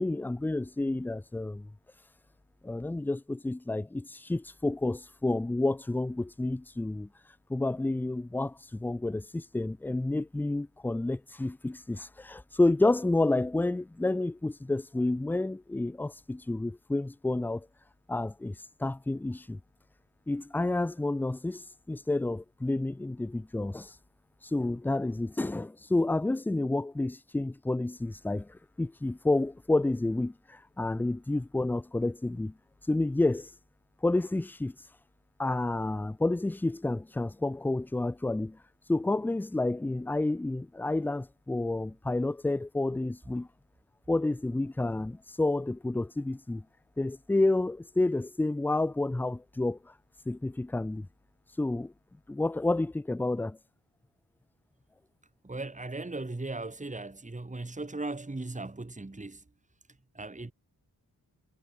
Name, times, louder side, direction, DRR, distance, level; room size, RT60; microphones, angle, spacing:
voice 1, 0.0-1.7 2.6-7.1 7.5-17.7 18.1-19.6 20.3-23.9 24.4-32.5 32.9-33.5 34.0-34.8 35.4-38.6 38.9-43.5 44.1-46.6 47.0-49.9 50.3-51.1 51.6-51.9 52.3-53.6, left 2 dB, 5° left, 0.3 m, -30 dB
voice 2, 55.4-59.4 60.1-60.5, right 2 dB, 20° right, 2.1 m, -37 dB
cardioid pair, 65°, 38 cm